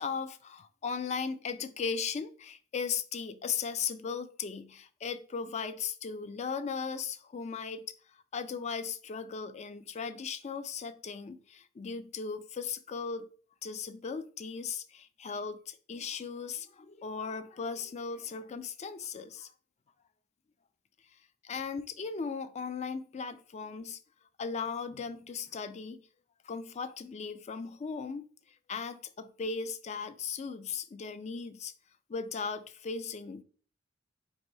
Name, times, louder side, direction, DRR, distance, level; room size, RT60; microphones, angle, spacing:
voice 1, 0.0-7.9 8.1-13.3 13.6-19.5 21.4-24.0 24.4-26.0 26.4-28.3 28.7-31.7 32.1-33.4, left 5 dB, 35° left, 0.4 m, -37 dB
4.1 x 2.6 x 4.6 m
head